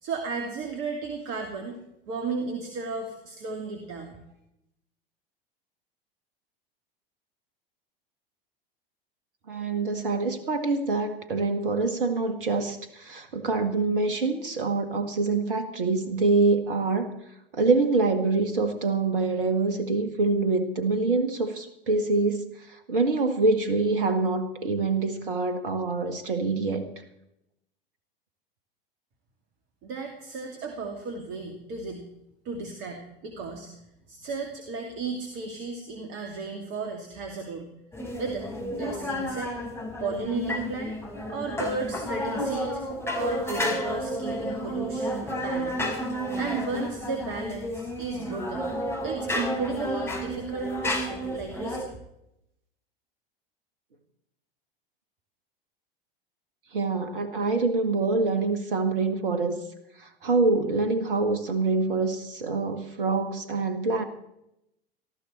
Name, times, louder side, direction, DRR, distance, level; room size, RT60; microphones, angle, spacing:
voice 1, 0.0-1.8 2.1-4.2 29.8-32.1 32.4-33.7 34.1-37.7 38.2-39.5 40.0-41.0 41.3-42.8 43.1-45.9 46.4-48.7 49.0-52.0, right 4 dB, 45° right, 4 dB, 2.5 m, -34 dB
voice 2, 9.5-17.1 17.5-26.9 56.7-59.6 60.0-64.0, right 3 dB, 65° right, 9 dB, 1.7 m, -25 dB
sound 1, 37.9-51.8, equal, 10° left, 5.7 m, -31 dB
19.5 x 14.0 x 4.3 m, 0.82 s
figure-of-eight pair, 80°, 29 cm